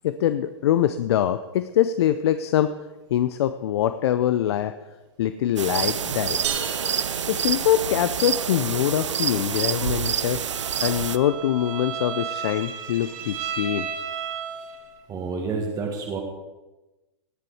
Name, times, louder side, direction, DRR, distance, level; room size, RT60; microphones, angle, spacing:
voice 1, 0.0-2.8 3.1-4.7 5.2-6.6 7.3-10.4 10.8-13.9, left 11 dB, 60° left, 11 dB, 0.6 m, -24 dB
sound 1, 5.6-11.2, right 8 dB, 85° right, 0.6 m, -27 dB
sound 2, 6.4-8.3, right 8 dB, 70° right, 1.8 m, -33 dB
Bowed string instrument, 10.3-15.0, right 7 dB, 50° right, 1.5 m, -34 dB
voice 2, 15.1-16.2, right 4 dB, 25° right, 1 dB, 1.7 m, -29 dB
18.0 x 7.6 x 4.8 m, 1.1 s
hypercardioid pair, 115°, 15 cm